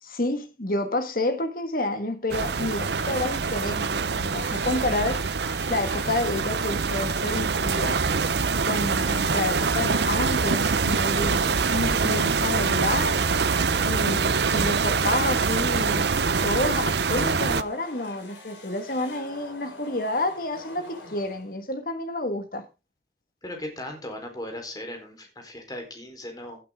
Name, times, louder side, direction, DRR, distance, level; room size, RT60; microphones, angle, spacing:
voice 1, 0.0-5.3 5.7-8.0 8.6-13.2 13.8-16.1 16.4-22.6, left 2 dB, 50° left, 1.8 m, -29 dB
sound 1, 2.3-17.6, right 5 dB, 70° right, 0.7 m, -24 dB
sound 2, 3.0-3.6 4.4-21.7, left 3 dB, 85° left, 4.6 m, -44 dB
voice 2, 23.4-26.6, left 1 dB, 20° left, 4.1 m, -37 dB
16.5 x 8.5 x 3.7 m
head